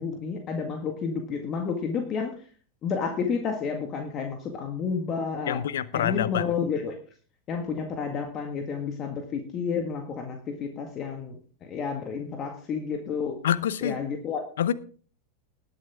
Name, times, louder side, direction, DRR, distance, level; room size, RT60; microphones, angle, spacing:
voice 1, 0.0-2.3 2.8-5.6 5.9-7.0 7.5-13.4 13.8-14.4, left 6 dB, 35° left, 1.8 m, -30 dB
voice 2, 5.5-6.5 13.4-14.0 14.6-14.7, left 10 dB, 65° left, 0.8 m, -26 dB
19.5 x 8.2 x 3.6 m
figure-of-eight pair, 90°, 0 cm